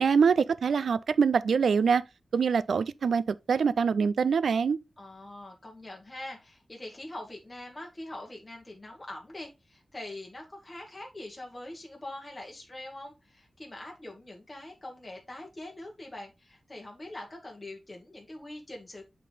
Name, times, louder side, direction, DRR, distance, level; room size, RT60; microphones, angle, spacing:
voice 1, 0.0-2.0 2.3-4.8, right 6 dB, 90° right, 0.3 m, -24 dB
voice 2, 5.0-19.0, left 1 dB, 25° left, 1.6 m, -43 dB
8.3 x 3.7 x 3.9 m
wide cardioid pair, 70°, 0 cm